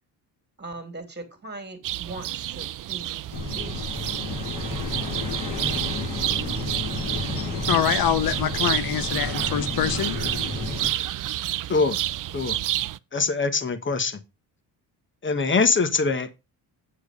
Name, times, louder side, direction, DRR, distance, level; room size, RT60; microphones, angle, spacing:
voice 1, 0.6-3.3 3.5-4.0, right 2 dB, 25° right, 2.6 m, -40 dB
sound 1, 1.8-13.0, right 13 dB, 50° right, 0.5 m, -30 dB
sound 2, 3.3-10.9, left 2 dB, 80° left, 5.8 m, -31 dB
voice 2, 7.7-10.2, left 10 dB, 55° left, 0.9 m, -24 dB
voice 3, 13.1-14.2 15.2-16.3, left 4 dB, 25° left, 1.3 m, -23 dB
8.7 x 4.7 x 5.2 m
cardioid pair, 85°, 43 cm